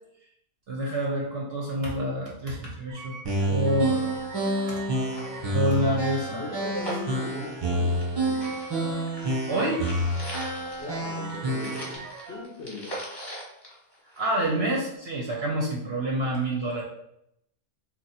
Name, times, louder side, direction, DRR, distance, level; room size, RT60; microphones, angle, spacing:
voice 1, 0.7-3.2 3.5-4.8 5.5-6.3 6.7-6.8 9.5-9.8 14.2-16.8, equal, 60° right, -3 dB, 0.7 m, -28 dB
sound 1, 2.9-12.4, right 4 dB, 85° right, 1.0 m, -44 dB
sound 2, 3.2-12.0, right 1 dB, 40° right, 0.3 m, -28 dB
sound 3, 4.2-4.3 4.6-4.7 5.0-8.1 8.4-14.5 14.9-15.0, equal, 20° left, 0.9 m, -41 dB
voice 2, 6.3-8.5 10.8-12.0 12.3-12.9, left 3 dB, 55° left, -4 dB, 0.7 m, -38 dB
2.9 x 2.2 x 4.1 m, 0.78 s
omnidirectional pair, 1.5 m